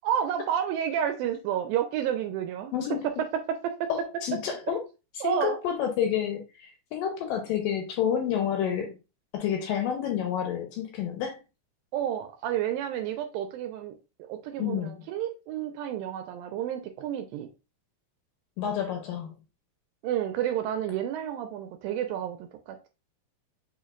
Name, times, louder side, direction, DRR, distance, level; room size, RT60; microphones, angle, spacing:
voice 1, 0.0-2.7 3.0-3.9 5.2-5.6 11.9-17.5 20.0-22.9, right 10 dB, 80° right, 2.2 m, -30 dB
voice 2, 2.7-3.1 3.9-4.8 5.2-6.4 6.9-9.0 9.3-11.4 14.6-14.9 18.6-19.3, left 9 dB, 75° left, 2.2 m, -29 dB
6.7 x 3.2 x 2.4 m
omnidirectional pair, 4.4 m